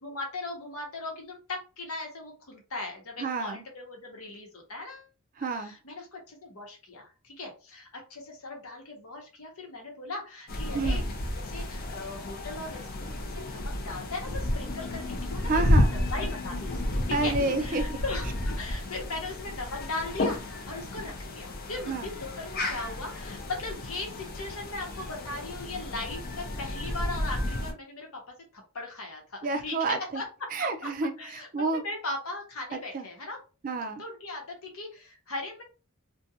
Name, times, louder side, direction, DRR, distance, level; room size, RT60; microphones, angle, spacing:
voice 1, 0.0-5.1 5.5-11.0 11.3-15.6 15.9-30.5 31.2-33.4 34.0-35.6, left 2 dB, 75° left, 0.9 m, -38 dB
voice 2, 3.2-3.6 5.4-5.7 10.7-11.1 15.5-15.9 17.1-18.0 21.9-22.1 29.4-30.2 30.5-31.8 32.7-33.1 33.6-34.0, right 3 dB, 40° right, 0.3 m, -30 dB
sound 1, 10.5-27.7, left 1 dB, 45° left, 0.5 m, -31 dB
2.4 x 2.2 x 2.7 m
head